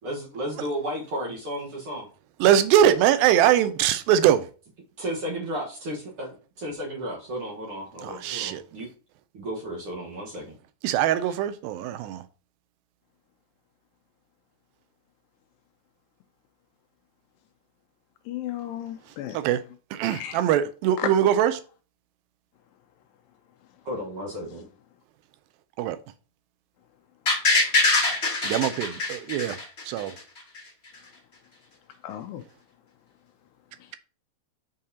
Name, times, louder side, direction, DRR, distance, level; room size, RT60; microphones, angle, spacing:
voice 1, 0.0-2.1 5.0-8.9 9.3-10.6 23.8-24.7, equal, 55° right, 1.7 m, -33 dB
voice 2, 2.4-4.5 8.0-8.6 10.8-12.2 19.3-19.6 19.9-21.6 25.8-26.0 28.4-29.6 29.9-30.2, right 10 dB, 90° right, 2.4 m, -22 dB
voice 3, 18.3-19.4 20.1-20.4 21.0-21.1 32.0-32.4, left 11 dB, 80° left, 2.1 m, -33 dB
sound 1, 27.3-30.2 30.5-30.6, left 3 dB, 50° left, 0.8 m, -23 dB
6.4 x 5.5 x 2.8 m
omnidirectional pair, 4.1 m